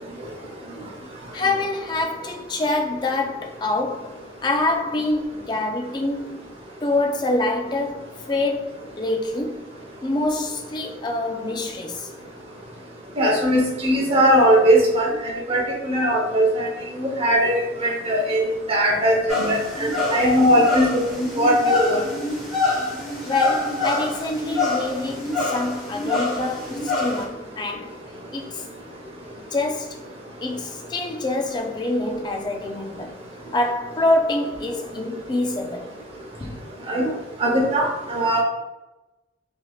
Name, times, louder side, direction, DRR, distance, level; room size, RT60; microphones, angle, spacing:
voice 1, 1.3-6.4 6.8-9.7 10.0-12.1 23.3-28.0 28.3-28.7 29.4-30.0 30.4-33.2 33.5-35.9 36.4-36.6, left 2 dB, 25° left, 0.3 m, -26 dB
voice 2, 13.2-15.1 15.5-16.7 17.2-17.5 17.8-18.4 18.7-22.0 36.9-37.1 37.4-38.4, equal, 35° right, 0.7 m, -19 dB
sound 1, 19.3-27.2, left 2 dB, ahead, 1.1 m, -26 dB
3.3 x 2.8 x 2.3 m
head